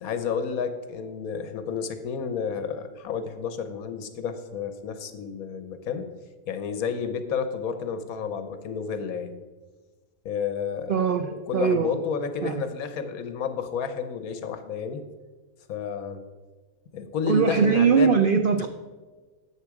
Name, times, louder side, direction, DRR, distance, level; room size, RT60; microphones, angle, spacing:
voice 1, 0.0-6.1 6.5-9.4 10.2-11.0 11.3-15.0 15.7-16.2 16.9-18.2, left 6 dB, 75° left, 9 dB, 1.3 m, -31 dB
voice 2, 10.9-12.0 12.4-12.5 17.3-18.7, right 6 dB, 80° right, 8 dB, 0.4 m, -21 dB
9.9 x 7.3 x 4.8 m, 1.3 s
omnidirectional pair, 1.5 m